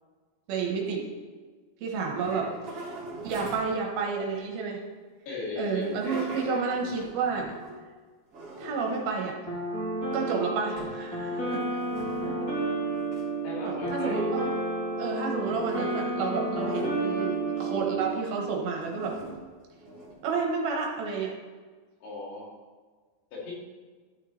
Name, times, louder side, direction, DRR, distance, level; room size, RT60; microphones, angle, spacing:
voice 1, 0.5-1.1 1.8-2.5 2.8-2.9 3.2-4.8 5.6-7.6 8.6-9.4 10.1-11.8 12.2-12.4 13.6-14.5 15.0-19.2 20.2-21.3, right 5 dB, 70° right, 0 dB, 2.6 m, -30 dB
sound 1, 1.9-3.8 5.7-7.9 8.3-9.2 9.8-10.3 10.8-11.1 11.4-12.5 13.0-13.2 15.4-17.3 17.9-18.3 18.8-20.3, equal, 40° right, 2.8 m, -42 dB
voice 2, 5.3-6.7 13.4-14.3 22.0-22.5 23.3-23.5, left 3 dB, 80° left, -5 dB, 4.5 m, -38 dB
sound 2, 9.5-18.2, right 2 dB, 35° left, 2.6 m, -31 dB
12.0 x 6.6 x 3.2 m, 1.4 s
omnidirectional pair, 4.8 m